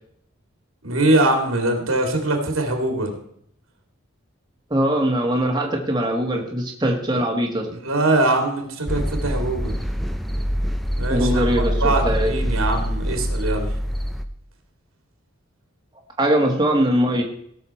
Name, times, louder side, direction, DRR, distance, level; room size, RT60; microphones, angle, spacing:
voice 1, 0.8-3.1 7.1-7.2 7.7-9.7 11.0-11.4 11.8-13.7, right 2 dB, 85° right, 3 dB, 2.5 m, -22 dB
voice 2, 4.7-7.7 11.1-12.3 16.2-17.2, right 1 dB, 20° right, 0 dB, 1.4 m, -21 dB
sound 1, 8.9-14.2, equal, ahead, 0.6 m, -24 dB
18.0 x 6.3 x 4.3 m, 0.69 s
head